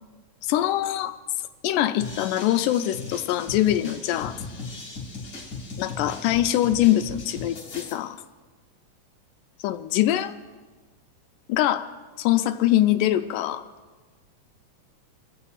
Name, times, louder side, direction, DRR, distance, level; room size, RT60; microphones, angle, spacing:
voice 1, 0.4-1.1 1.6-4.4 5.8-8.2 9.6-10.3 11.5-11.9 12.2-13.6, left 13 dB, 90° left, 8 dB, 2.1 m, -23 dB
sound 1, 2.0-7.9, left 3 dB, 35° left, 2.6 m, -37 dB
24.0 x 15.5 x 2.4 m, 1.3 s
omnidirectional pair, 3.6 m